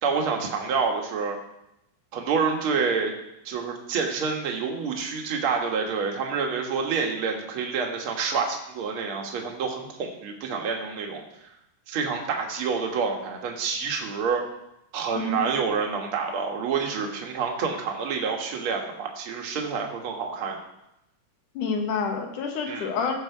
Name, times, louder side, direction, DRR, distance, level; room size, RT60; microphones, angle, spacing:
voice 1, 0.0-1.4 2.1-3.1 3.4-11.2 11.9-14.4 14.9-20.6 22.7-22.9, right 5 dB, 50° right, 1 dB, 2.1 m, -28 dB
voice 2, 15.2-15.5 21.5-23.2, left 4 dB, 70° left, 3 dB, 3.0 m, -28 dB
17.0 x 6.8 x 4.7 m, 0.85 s
omnidirectional pair, 3.8 m